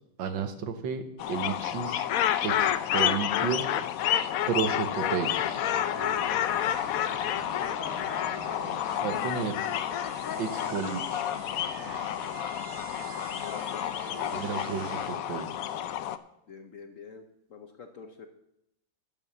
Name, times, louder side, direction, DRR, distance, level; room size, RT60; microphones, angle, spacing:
voice 1, 0.2-1.0 1.3-2.0 2.4-3.7 4.5-5.5 9.0-9.6 10.4-11.3 14.3-15.5, right 6 dB, 75° right, 8 dB, 1.7 m, -32 dB
sound 1, 1.2-16.2, left 11 dB, 90° left, 0.7 m, -30 dB
sound 2, 5.2-5.7 6.9-10.2 11.4-13.2, right 1 dB, 25° right, 2.2 m, -54 dB
sound 3, 5.3-15.2, right 5 dB, 50° right, 0.8 m, -45 dB
voice 2, 7.5-8.9 13.4-14.5 16.5-18.3, left 5 dB, 55° left, 5 dB, 0.9 m, -46 dB
12.5 x 5.6 x 7.2 m, 0.81 s
omnidirectional pair, 2.1 m